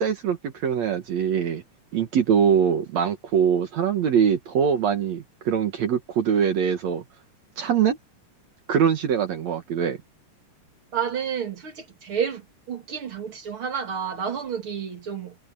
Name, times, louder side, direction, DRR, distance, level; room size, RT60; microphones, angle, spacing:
voice 1, 0.0-1.6 1.9-7.0 7.6-8.0 8.7-10.0, right 7 dB, 65° right, 2.6 m, -23 dB
voice 2, 10.9-15.4, right 7 dB, 45° right, 3.0 m, -30 dB
omnidirectional pair, 3.5 m